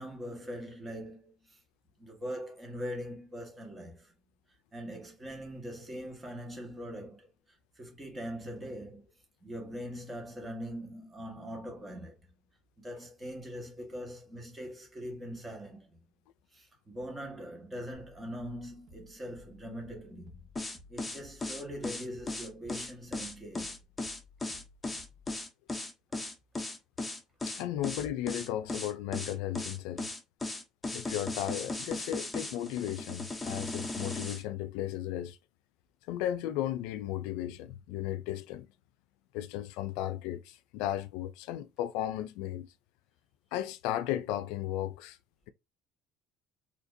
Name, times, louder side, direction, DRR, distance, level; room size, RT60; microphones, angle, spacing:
voice 1, 0.0-1.6 2.0-4.1 4.7-9.1 9.4-12.3 12.8-16.0 16.5-23.7, equal, 15° right, 1.5 m, -42 dB
sound 1, 17.9-25.4, left 2 dB, 45° right, 1.2 m, -57 dB
sound 2, 20.6-34.4, left 2 dB, 10° left, 0.8 m, -37 dB
voice 2, 27.5-30.1 30.9-35.4 36.1-38.7 39.3-42.7 43.5-45.2, left 12 dB, 85° left, 0.4 m, -35 dB
4.3 x 2.8 x 2.6 m
cardioid pair, 130°, 0 cm